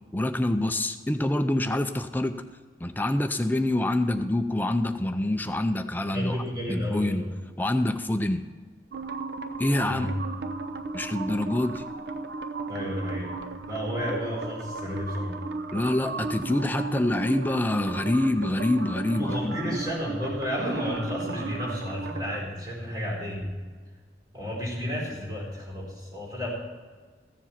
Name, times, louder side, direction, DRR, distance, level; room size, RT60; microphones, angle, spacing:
voice 1, 0.1-2.3 2.8-6.4 6.7-7.3 7.6-8.4 9.6-10.1 10.9-11.8 15.7-19.8, left 1 dB, 10° left, 7 dB, 0.5 m, -26 dB
voice 2, 6.1-7.3 9.8-10.1 12.7-13.3 13.7-15.4 19.1-23.5 24.3-26.5, equal, 20° right, -4 dB, 4.5 m, -32 dB
sound 1, 8.9-22.4, right 3 dB, 75° right, 0.8 m, -35 dB
15.0 x 7.5 x 5.7 m, 1.5 s
head